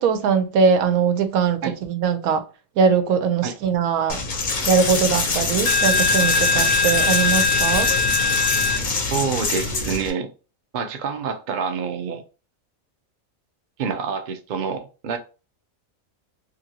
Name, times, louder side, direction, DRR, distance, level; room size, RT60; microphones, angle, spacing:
voice 1, 0.0-2.4 2.8-4.2 4.7-7.9, right 6 dB, 90° right, 1.0 m, -21 dB
Coin (dropping), 4.1-10.1, left 4 dB, 55° left, 0.5 m, -21 dB
voice 2, 9.1-10.3 10.7-12.2 13.8-15.2, right 5 dB, 65° right, 0.4 m, -27 dB
2.9 x 2.6 x 2.7 m
omnidirectional pair, 1.4 m